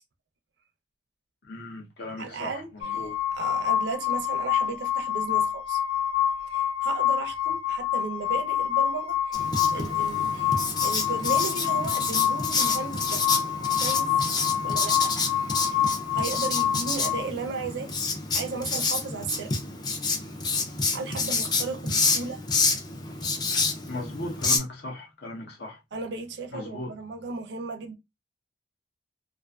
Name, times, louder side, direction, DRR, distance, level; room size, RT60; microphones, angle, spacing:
voice 1, 1.4-3.2 23.9-25.8 26.5-26.9, left 1 dB, 60° left, 0.7 m, -37 dB
voice 2, 2.2-5.8 6.4-13.3 13.8-14.2 14.6-19.6 20.9-22.4 25.9-27.9, right 4 dB, 65° right, 0.5 m, -35 dB
sound 1, 2.8-17.3, left 10 dB, 90° left, 0.4 m, -27 dB
Writing, 9.3-24.6, left 4 dB, 20° left, 0.4 m, -28 dB
2.4 x 2.4 x 2.3 m
head